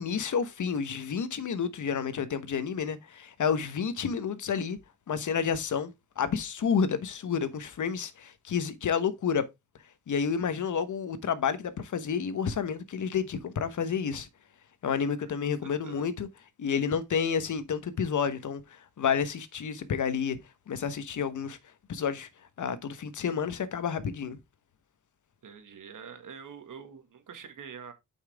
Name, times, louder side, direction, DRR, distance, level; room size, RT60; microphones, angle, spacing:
voice 1, 0.0-4.8 5.1-9.4 10.1-14.3 14.8-16.3 16.6-20.4 20.7-21.6 21.9-22.3 22.6-24.4, left 6 dB, 70° left, 1.2 m, -30 dB
voice 2, 15.6-16.1 25.4-27.9, right 7 dB, 80° right, 1.8 m, -46 dB
7.3 x 5.6 x 3.5 m
cardioid pair, 75°, 31 cm